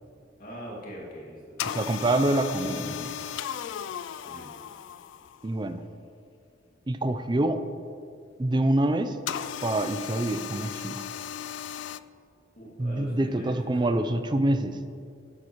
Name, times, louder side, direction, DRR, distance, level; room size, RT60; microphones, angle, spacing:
voice 1, 0.4-1.6 4.2-4.6 12.6-13.9 14.1-14.2, equal, 50° left, -4 dB, 2.3 m, -42 dB
sound 1, 1.6-5.5 9.3-12.0, left 9 dB, 85° left, 0.3 m, -36 dB
voice 2, 1.7-3.2 5.4-5.8 6.9-7.6 8.4-9.2 9.6-11.0 12.8-14.8, right 1 dB, 25° right, 10 dB, 0.5 m, -26 dB
12.0 x 10.5 x 3.1 m, 2.4 s
head